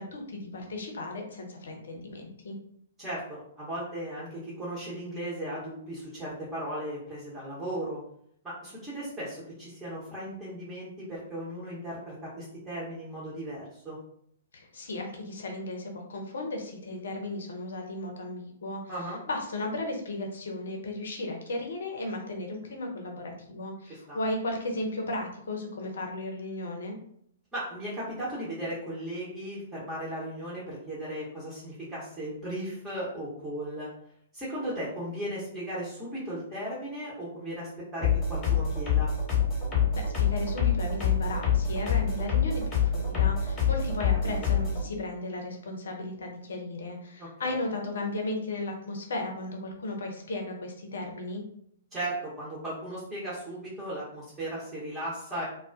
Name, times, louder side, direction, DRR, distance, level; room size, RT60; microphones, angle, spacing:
voice 1, 0.0-2.6 14.5-26.9 39.9-51.4, left 2 dB, 60° left, 2 dB, 0.6 m, -35 dB
voice 2, 3.0-8.0 8.4-14.0 18.9-19.2 24.1-24.2 27.5-33.9 34.3-39.1 44.2-44.3 47.2-47.6 51.9-55.4, right 1 dB, 10° right, -8 dB, 0.8 m, -36 dB
sound 1, 38.0-44.8, left 7 dB, 20° left, 1.0 m, -26 dB
2.2 x 2.2 x 2.5 m, 0.67 s
figure-of-eight pair, 115°, 0 cm